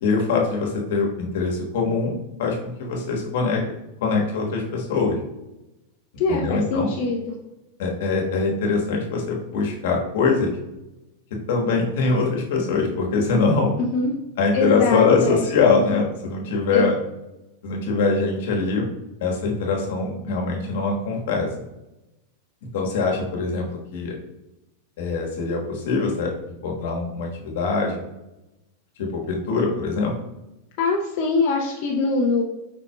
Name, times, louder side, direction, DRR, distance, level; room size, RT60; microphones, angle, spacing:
voice 1, 0.0-3.6 4.0-5.2 6.3-6.9 7.8-10.6 11.5-13.7 14.4-17.0 17.6-18.9 19.2-21.5 22.7-24.1 25.0-26.3 26.6-28.0 29.0-30.1, left 4 dB, 70° left, 0 dB, 1.3 m, -23 dB
voice 2, 6.2-7.2 13.9-14.1 14.5-15.4 16.7-16.9 30.8-32.4, left 3 dB, 50° left, -2 dB, 0.6 m, -23 dB
5.1 x 4.2 x 2.2 m, 0.95 s
supercardioid pair, 130°, 0 cm